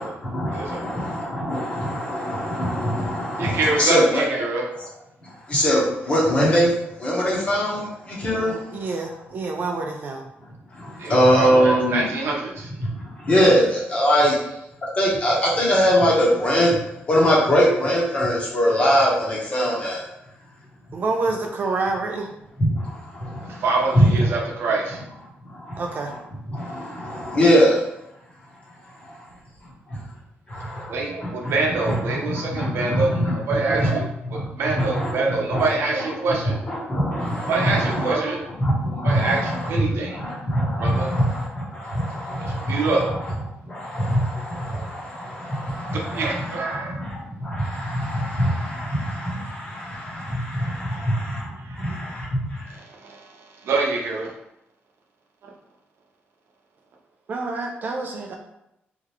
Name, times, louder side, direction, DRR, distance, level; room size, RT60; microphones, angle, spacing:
voice 1, 0.0-4.2 5.2-9.0 10.7-12.1 12.8-14.4 14.9-16.8 17.1-20.0 22.6-23.6 23.9-24.3 25.4-26.2 26.5-27.8 29.6-30.0 30.5-30.9 31.2-31.6 31.8-33.3 33.7-33.9 34.3-35.7 36.3-38.1 38.6-39.7 40.0-43.3 43.6-52.8, equal, 30° left, -5 dB, 1.4 m, -23 dB
voice 2, 0.5-0.8 3.4-4.6 11.0-12.7 23.6-25.0 30.9-33.2 33.5-34.1 34.3-36.6 37.5-38.4 39.0-40.2 40.8-41.1 42.4-43.2 46.1-47.0 51.6-51.8 53.0-54.3, right 3 dB, 70° right, -1 dB, 0.9 m, -25 dB
voice 3, 8.7-10.2 20.9-22.3 25.8-26.1 57.3-58.4, right 3 dB, 45° right, 2 dB, 0.5 m, -27 dB
3.8 x 3.4 x 3.1 m, 0.83 s
cardioid pair, 140°, 4 cm